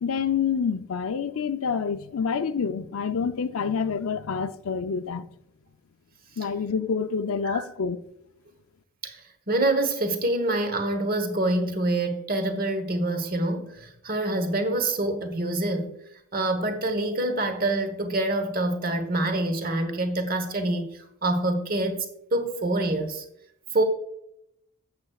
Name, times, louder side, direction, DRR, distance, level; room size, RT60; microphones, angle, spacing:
voice 1, 0.0-5.3 6.4-8.0, left 6 dB, 70° left, 0.5 m, -27 dB
voice 2, 9.0-15.9 16.3-22.1 22.3-23.2 23.7-23.8, right 2 dB, 40° right, 1.1 m, -26 dB
10.5 x 7.6 x 2.3 m
head